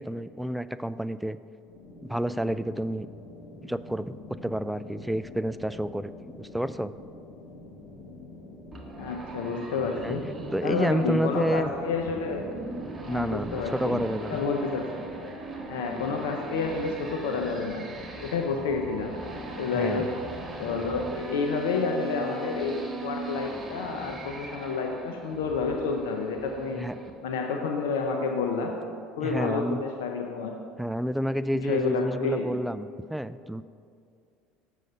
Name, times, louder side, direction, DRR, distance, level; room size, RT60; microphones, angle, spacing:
voice 1, 0.0-1.4 2.0-3.1 3.6-6.1 6.4-6.9 10.0-10.2 10.5-11.7 13.1-14.4 19.7-20.1 26.7-26.9 29.2-29.8 30.8-33.6, right 1 dB, 5° right, 14 dB, 0.3 m, -29 dB
sound 1, 1.7-21.3, left 2 dB, 60° left, 1.5 m, -46 dB
sound 2, 8.7-27.1, right 3 dB, 20° right, 1.2 m, -40 dB
voice 2, 9.0-10.2 10.6-12.4 13.1-14.0 14.3-14.9 15.7-17.9 18.2-19.1 19.6-20.1 20.6-26.9 27.2-28.7 29.2-30.5 31.5-32.5, left 4 dB, 80° left, 3 dB, 0.7 m, -29 dB
7.7 x 6.4 x 5.4 m, 2.4 s
hypercardioid pair, 80°, 0 cm